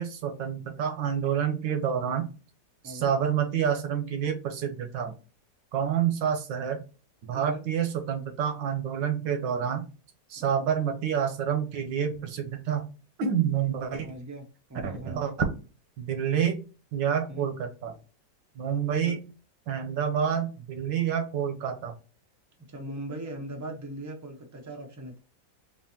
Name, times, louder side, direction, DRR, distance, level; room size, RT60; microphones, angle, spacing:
voice 1, 0.0-2.3 2.8-5.1 5.7-6.8 7.2-9.8 10.3-12.9 13.2-14.1 14.8-15.3 16.0-16.6 16.9-17.9 18.6-19.2 19.7-21.9, right 8 dB, 90° right, 6 dB, 1.6 m, -28 dB
voice 2, 7.3-7.6 13.6-14.4 14.7-15.3 17.3-17.5 19.0-19.1 22.7-25.2, right 1 dB, 15° right, 1 dB, 0.7 m, -39 dB
4.3 x 3.4 x 2.8 m, 0.33 s
omnidirectional pair, 1.9 m